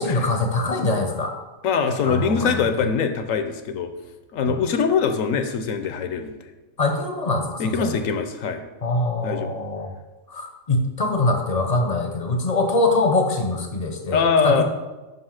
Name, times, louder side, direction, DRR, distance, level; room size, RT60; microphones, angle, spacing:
voice 1, 0.0-1.3 2.0-2.9 4.4-4.6 6.8-7.9 8.8-9.9 10.3-14.6, left 2 dB, 35° left, 3 dB, 0.7 m, -23 dB
voice 2, 1.6-3.9 4.3-6.5 7.6-8.6 9.2-9.5 14.1-14.6, left 6 dB, 70° left, 8 dB, 1.0 m, -22 dB
5.4 x 5.4 x 5.8 m, 1.1 s
omnidirectional pair, 1.5 m